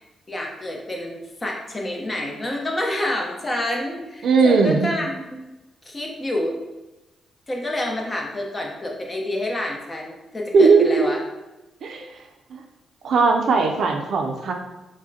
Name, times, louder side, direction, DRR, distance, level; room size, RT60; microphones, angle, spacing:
voice 1, 0.3-5.4 5.8-6.6 7.5-11.2, left 1 dB, 25° left, 0 dB, 0.8 m, -28 dB
voice 2, 4.2-4.9 10.5-11.1 11.8-12.0 12.5-12.6 13.0-14.5, right 4 dB, 70° right, 3 dB, 0.5 m, -18 dB
4.8 x 2.1 x 2.7 m, 1.0 s
cardioid pair, 80°, 0 cm